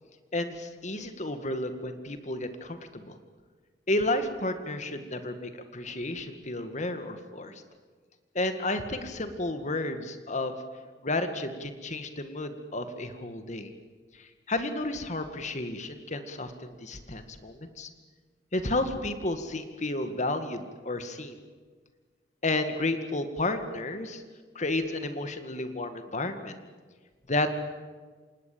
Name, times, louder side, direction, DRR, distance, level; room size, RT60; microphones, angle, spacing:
voice 1, 0.3-3.2 3.9-7.5 8.3-10.5 11.0-13.7 14.5-17.9 18.5-21.4 22.4-24.2 24.6-26.5 27.3-27.5, left 2 dB, 45° left, 8 dB, 2.0 m, -32 dB
26.0 x 19.5 x 8.7 m, 1.5 s
head